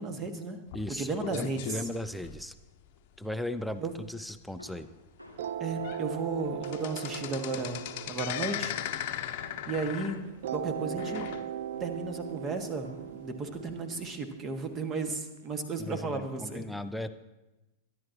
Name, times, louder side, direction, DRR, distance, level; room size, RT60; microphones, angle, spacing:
voice 1, 0.0-0.6 0.9-1.8 3.8-3.9 5.6-8.7 9.7-10.2 10.5-11.3 11.8-16.6, right 3 dB, 25° right, 7 dB, 1.7 m, -34 dB
sound 1, 0.7-2.9 3.4-3.6 3.9-4.0 4.5-4.6 5.3-5.4 5.7-6.1 6.3-11.9 12.2-12.3 13.1-13.2, left 11 dB, 50° left, 0.9 m, -38 dB
voice 2, 0.7-2.5 3.2-4.9 15.8-17.1, left 1 dB, ahead, 10 dB, 0.7 m, -37 dB
sound 2, 4.6-11.2 11.7-12.2 12.8-13.3, left 1 dB, 85° right, 2.2 m, -52 dB
sound 3, 5.4-9.8 10.4-15.4, right 10 dB, 55° right, 0.4 m, -39 dB
23.0 x 11.5 x 2.9 m, 1.0 s
figure-of-eight pair, 90°, 0 cm